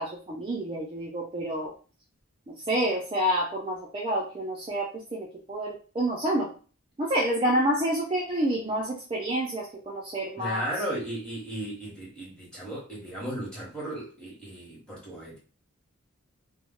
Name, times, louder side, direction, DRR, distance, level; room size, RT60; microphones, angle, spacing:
voice 1, 0.0-1.7 2.5-6.5 7.0-10.7, right 1 dB, 25° right, -3 dB, 0.4 m, -28 dB
voice 2, 10.4-15.4, right 1 dB, 5° left, -6 dB, 1.0 m, -35 dB
2.2 x 2.1 x 3.7 m, 0.38 s
head